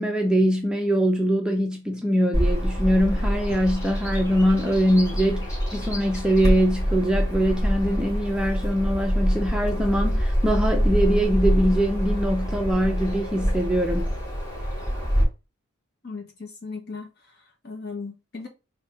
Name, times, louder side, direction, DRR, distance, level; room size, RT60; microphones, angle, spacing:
voice 1, 0.0-14.1, equal, 5° right, 0.5 m, -23 dB
Bird vocalization bird call bird song, 2.3-15.2, equal, 15° left, 2.4 m, -25 dB
voice 2, 16.0-18.5, left 4 dB, 50° left, 1.3 m, -37 dB
4.2 x 2.8 x 4.6 m
head